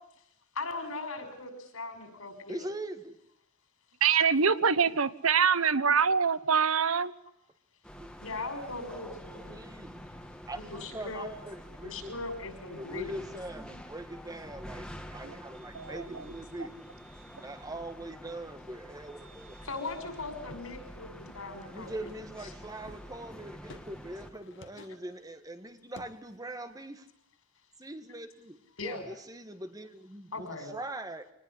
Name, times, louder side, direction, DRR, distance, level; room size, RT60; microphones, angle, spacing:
voice 1, 0.5-2.7 8.2-9.6 10.6-11.3 11.8-13.1 19.6-22.1 28.8-29.0 30.3-30.7, left 3 dB, 75° left, 7 dB, 6.2 m, -39 dB
voice 2, 2.5-3.1 8.0-8.1 9.3-10.0 10.5-12.1 12.7-16.8 17.4-19.6 21.7-27.1 27.8-31.3, right 1 dB, 15° right, 9 dB, 1.7 m, -42 dB
voice 3, 4.0-7.1 15.2-15.3 15.7-16.0, right 6 dB, 75° right, 16 dB, 1.1 m, -25 dB
sound 1, 7.8-24.3, equal, 5° left, 2.1 m, -47 dB
sound 2, 20.5-20.9 21.3-21.6 22.1-23.2 23.7-24.0 24.4-25.1 26.0-26.4 26.7-26.8, left 2 dB, 55° left, 1.8 m, -51 dB
25.5 x 19.5 x 10.0 m, 0.75 s
head